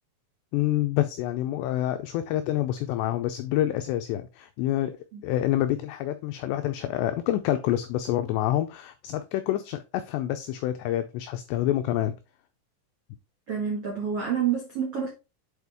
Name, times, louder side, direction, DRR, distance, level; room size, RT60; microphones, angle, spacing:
voice 1, 0.5-5.0 5.2-12.1, left 13 dB, 90° left, 2.4 m, -27 dB
voice 2, 13.5-15.1, right 7 dB, 80° right, 1.3 m, -28 dB
8.2 x 4.5 x 3.5 m
omnidirectional pair, 5.6 m